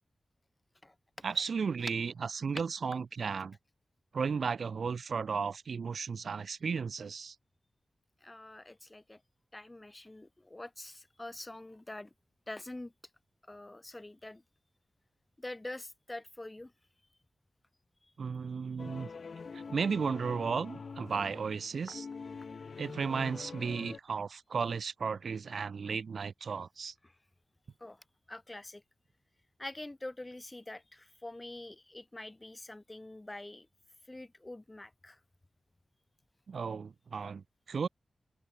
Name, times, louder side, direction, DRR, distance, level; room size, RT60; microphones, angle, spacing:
voice 1, 1.2-3.6 4.1-7.4 18.2-19.1 19.5-22.1 22.8-26.9 36.5-37.9, right 5 dB, 65° right, 0.8 m, -34 dB
voice 2, 8.2-9.2 9.5-12.1 12.5-12.9 13.5-14.4 15.4-16.7 27.8-28.0 28.3-28.8 29.6-33.7 34.1-35.2, left 2 dB, 15° left, 2.1 m, -45 dB
sound 1, 18.8-24.0, left 5 dB, 55° left, 2.3 m, -45 dB
wide cardioid pair, 165°, 0 cm